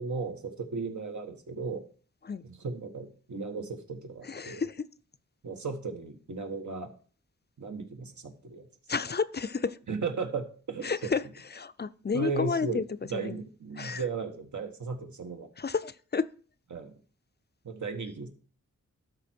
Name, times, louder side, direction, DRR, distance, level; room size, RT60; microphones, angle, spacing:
voice 1, 0.0-1.8 2.4-4.6 5.4-6.9 7.6-8.7 9.9-10.9 12.1-12.8 13.1-15.5 16.7-16.9 17.6-18.3, right 4 dB, 70° right, 5 dB, 1.3 m, -35 dB
voice 2, 4.2-4.8 8.9-9.8 10.8-11.2 11.5-12.8 13.1-13.4 13.8-14.0 15.6-16.3, left 5 dB, 35° left, 14 dB, 0.5 m, -31 dB
12.0 x 4.6 x 4.5 m, 0.43 s
wide cardioid pair, 60°, 30 cm